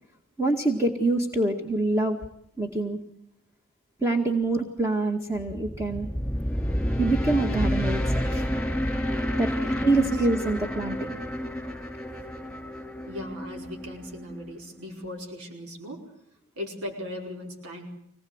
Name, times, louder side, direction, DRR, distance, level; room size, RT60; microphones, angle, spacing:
voice 1, 0.4-2.2 2.6-3.0 4.0-6.1 7.0-8.4 9.4-9.5 9.8-11.2, right 2 dB, 10° right, 2 dB, 2.1 m, -25 dB
sound 1, 5.4-14.5, equal, 5° left, 4.5 m, -29 dB
voice 2, 9.6-10.3 13.1-16.1 16.6-17.9, left 1 dB, 80° right, 1 dB, 5.0 m, -38 dB
25.5 x 20.0 x 8.1 m, 0.72 s
head